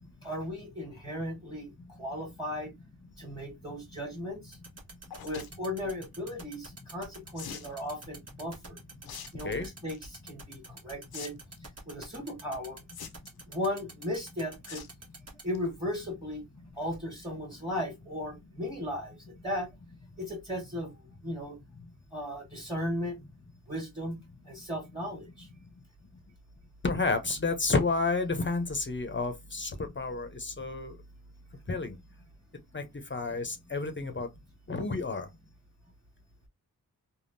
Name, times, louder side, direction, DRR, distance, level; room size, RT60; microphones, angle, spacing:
voice 1, 0.2-1.7 2.0-2.7 3.2-4.6 5.2-8.8 9.3-11.4 11.9-12.8 13.5-14.8 15.4-16.4 16.8-19.2 19.4-19.7 20.2-21.0 21.2-21.6 22.1-23.2 23.7-24.2 24.4-25.5, left 1 dB, 15° right, 1.5 m, -36 dB
sound 1, 4.5-15.4, right 3 dB, 45° right, 1.0 m, -47 dB
sound 2, 5.1-5.5 7.4-7.7 9.0-9.3 9.7-10.0 11.1-11.3 11.6-11.7 12.9-13.4 14.7-14.9 15.3-15.6 15.9-16.0 16.2-16.3, left 7 dB, 85° left, 0.6 m, -43 dB
voice 2, 26.8-30.9 31.7-32.0 32.7-32.8 33.1-34.3 34.7-35.3, left 3 dB, 30° left, 0.6 m, -30 dB
3.5 x 2.2 x 2.5 m
wide cardioid pair, 60°, 36 cm